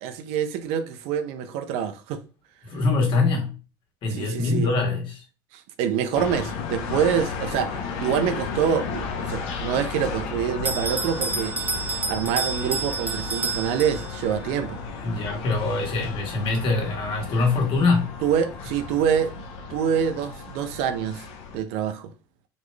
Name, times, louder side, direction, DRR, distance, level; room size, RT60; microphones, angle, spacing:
voice 1, 0.0-2.2 4.1-4.7 5.5-11.6 12.1-14.8 18.2-19.3 19.7-21.2 21.5-22.1, right 8 dB, 65° right, 0.7 m, -26 dB
voice 2, 2.6-3.5 4.0-5.2 15.0-18.1, left 3 dB, 50° left, 1.8 m, -23 dB
sound 1, 6.1-21.6, left 5 dB, 65° left, 1.0 m, -34 dB
Bell, 10.6-14.4, right 4 dB, 15° right, 0.4 m, -29 dB
4.1 x 3.1 x 3.4 m
hypercardioid pair, 85°, 11 cm